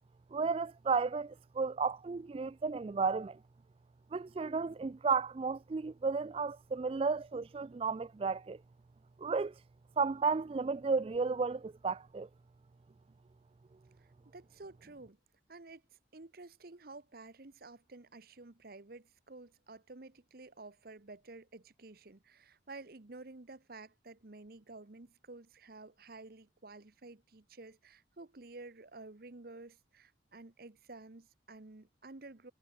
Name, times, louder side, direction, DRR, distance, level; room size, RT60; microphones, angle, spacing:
voice 1, 0.3-3.4 4.1-8.6 9.2-9.6 10.0-12.3, right 4 dB, 30° right, 0.3 m, -33 dB
voice 2, 14.3-15.2 15.5-15.8 16.1-32.5, right 3 dB, 50° right, 1.1 m, -51 dB
head